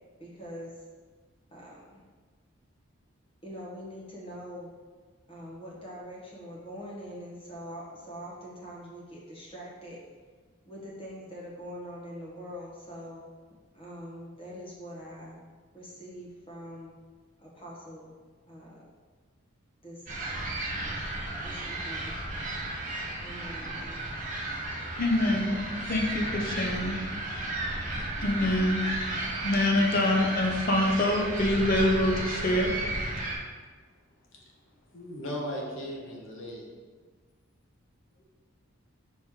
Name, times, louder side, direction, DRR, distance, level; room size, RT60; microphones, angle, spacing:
voice 1, 0.2-0.7 1.5-2.0 3.4-4.7 5.3-10.0 10.6-13.2 13.7-15.4 15.7-16.9 17.4-18.1 18.5-18.8 19.8-20.3 20.8-21.2 21.4-22.2 23.2-23.8, equal, 25° left, 1.0 m, -43 dB
sound 1, 20.1-33.4, right 2 dB, 35° right, 0.7 m, -34 dB
voice 2, 25.0-27.0 27.3-27.5 28.2-32.7, left 1 dB, 40° left, 0.6 m, -26 dB
voice 3, 34.9-36.6 38.2-38.3, equal, 65° left, 0.9 m, -37 dB
4.4 x 3.0 x 3.6 m
head